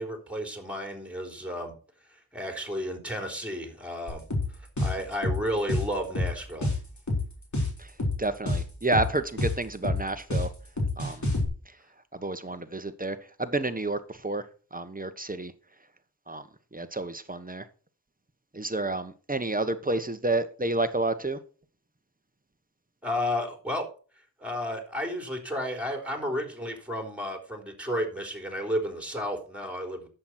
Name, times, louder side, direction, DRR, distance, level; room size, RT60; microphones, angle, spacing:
voice 1, 0.0-1.7 2.0-4.2 4.5-6.7 23.0-23.9 24.4-30.1, equal, 5° right, 3.8 m, -32 dB
sound 1, 4.1-11.5, left 2 dB, 45° left, 4.0 m, -28 dB
voice 2, 8.2-10.5 11.0-11.3 12.1-14.4 14.7-15.5 16.3-16.4 16.7-17.6 18.5-21.4, right 2 dB, 20° right, 1.2 m, -30 dB
11.0 x 7.9 x 4.4 m
wide cardioid pair, 65°, 39 cm